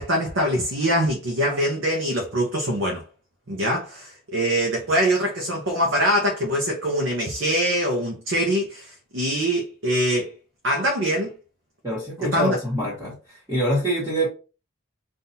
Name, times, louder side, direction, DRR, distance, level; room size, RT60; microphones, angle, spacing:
voice 1, 0.0-3.0 3.5-10.3 10.6-11.3 12.2-12.6, equal, 70° right, 0.8 m, -23 dB
voice 2, 11.8-13.1 13.5-14.3, equal, 15° right, 1.4 m, -24 dB
5.5 x 2.6 x 2.8 m
head